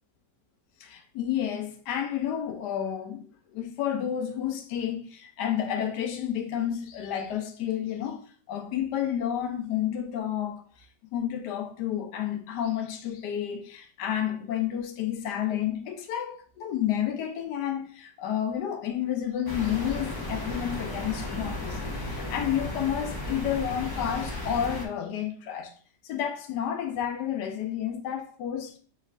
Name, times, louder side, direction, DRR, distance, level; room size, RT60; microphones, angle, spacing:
voice 1, 0.8-10.6 11.1-25.7 26.0-28.8, left 10 dB, 75° left, 1.2 m, -30 dB
sound 1, 19.5-24.9, left 1 dB, 35° left, 0.3 m, -34 dB
6.3 x 3.3 x 2.4 m
omnidirectional pair, 1.9 m